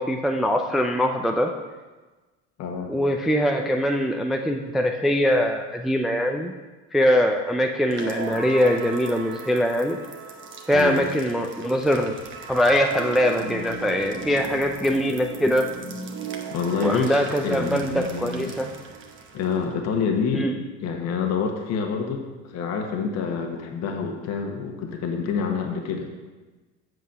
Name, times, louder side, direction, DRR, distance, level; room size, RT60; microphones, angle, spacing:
voice 1, 0.0-1.5 2.9-6.5 6.9-10.0 10.7-12.1 12.5-15.7 16.8-18.7 20.3-20.5, equal, ahead, 3 dB, 0.4 m, -22 dB
voice 2, 2.6-2.9 10.7-11.1 16.5-17.1 17.4-18.5 19.3-20.5 20.8-26.1, left 5 dB, 50° left, 3 dB, 1.3 m, -27 dB
sound 1, 7.9-19.7, right 4 dB, 35° right, 1.1 m, -37 dB
8.0 x 5.4 x 5.4 m, 1.2 s
supercardioid pair, 105°, 33 cm